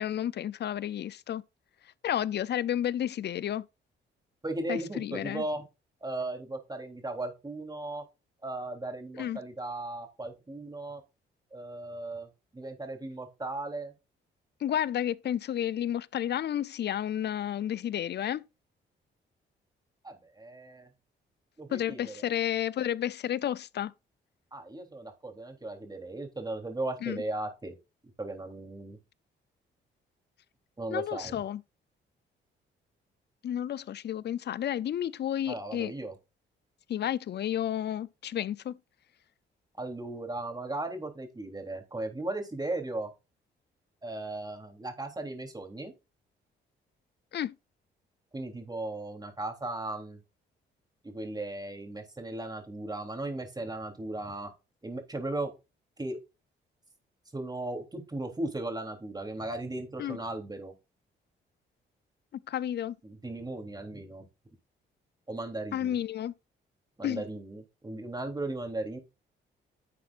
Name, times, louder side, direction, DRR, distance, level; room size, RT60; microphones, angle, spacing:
voice 1, 0.0-1.4 2.0-3.6 4.7-5.4 9.1-9.4 14.6-18.4 21.7-23.9 27.0-27.2 30.9-31.6 33.4-35.9 36.9-38.8 47.3-47.5 60.0-60.2 62.5-63.0 65.7-66.3 67.0-67.2, left 10 dB, 55° left, 0.6 m, -31 dB
voice 2, 4.4-5.6 6.0-8.0 8.4-11.0 11.5-12.3 12.5-13.9 20.0-20.9 21.6-22.1 24.5-27.7 28.2-29.0 30.8-31.4 35.5-36.1 39.8-43.1 44.0-45.9 48.3-50.2 51.0-54.5 54.8-55.5 56.0-56.2 57.3-60.7 63.0-64.2 65.3-66.0 67.0-69.0, right 2 dB, 20° right, 3.4 m, -37 dB
11.0 x 7.3 x 2.5 m
cardioid pair, 70°, 20 cm